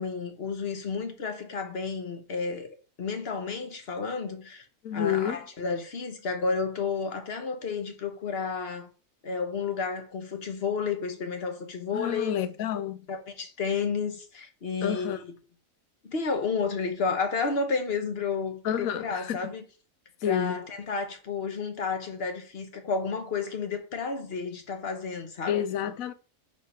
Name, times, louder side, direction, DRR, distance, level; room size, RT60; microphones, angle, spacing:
voice 1, 0.0-4.6 4.9-8.9 9.2-12.4 13.1-15.2 16.0-19.6 20.2-25.6, left 5 dB, 50° left, 1.3 m, -31 dB
voice 2, 4.8-5.4 11.9-13.1 14.8-15.2 18.6-19.4 20.2-20.7 25.5-26.1, left 10 dB, 85° left, 1.1 m, -29 dB
5.0 x 4.0 x 5.7 m
omnidirectional pair, 1.4 m